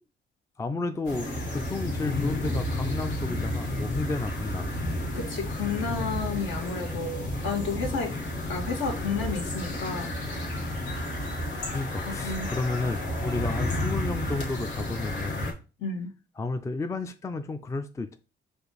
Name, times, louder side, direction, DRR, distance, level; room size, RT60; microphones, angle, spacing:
voice 1, 0.6-4.7 11.7-15.5 16.4-18.2, left 3 dB, 15° left, 0.3 m, -32 dB
sound 1, 1.0-15.5, left 1 dB, 90° left, 1.4 m, -31 dB
voice 2, 5.1-8.1 8.5-10.1 12.2-12.5 15.8-16.1, left 4 dB, 70° left, 1.3 m, -31 dB
4.9 x 2.5 x 4.0 m
cardioid pair, 90°, 20 cm